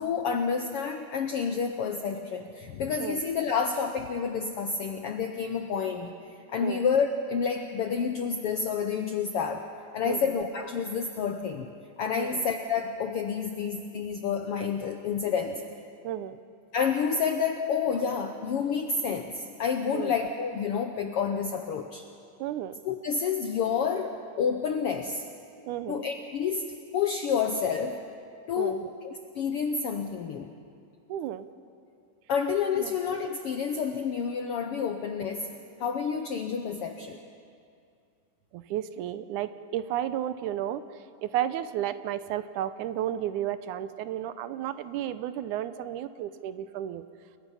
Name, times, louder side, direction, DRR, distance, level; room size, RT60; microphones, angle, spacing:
voice 1, 0.0-6.1 6.5-9.6 9.9-11.7 12.0-15.6 16.7-22.0 22.8-25.2 25.9-26.7 26.9-28.0 28.5-30.5 32.3-35.5 35.8-37.2, left 6 dB, 75° left, 6 dB, 1.3 m, -29 dB
voice 2, 10.0-10.4 12.1-12.5 16.0-16.4 19.9-20.2 22.4-22.7 25.7-26.0 28.6-28.9 31.1-31.5 32.7-33.0 38.5-47.0, right 11 dB, 75° right, 12 dB, 2.1 m, -33 dB
29.5 x 21.5 x 5.6 m, 2.4 s
omnidirectional pair, 3.7 m